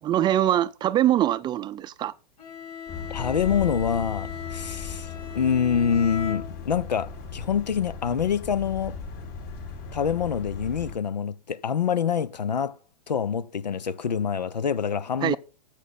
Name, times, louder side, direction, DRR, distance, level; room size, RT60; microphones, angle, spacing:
voice 1, 0.0-2.1 15.2-15.4, right 12 dB, 20° right, 0.5 m, -23 dB
Bowed string instrument, 2.4-7.0, left 8 dB, 70° left, 5.2 m, -38 dB
sound 1, 2.9-11.0, left 5 dB, 40° left, 5.0 m, -37 dB
voice 2, 3.1-5.1 5.3-9.0 9.9-12.8 13.1-15.4, left 7 dB, 90° left, 0.9 m, -26 dB
13.5 x 8.4 x 4.2 m
hypercardioid pair, 120°, 21 cm